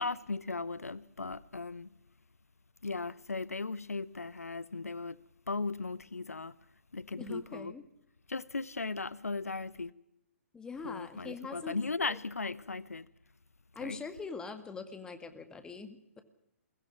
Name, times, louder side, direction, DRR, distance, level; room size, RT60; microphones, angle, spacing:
voice 1, 0.0-1.9 2.8-5.2 5.5-6.5 6.9-7.7 8.3-9.9 10.8-13.1 13.8-14.0, left 3 dB, 80° left, 0.8 m, -37 dB
voice 2, 7.2-7.8 10.5-11.7 12.0-12.2 13.8-16.2, left 4 dB, 10° left, 2.0 m, -43 dB
22.5 x 16.0 x 8.6 m
figure-of-eight pair, 125°, 8 cm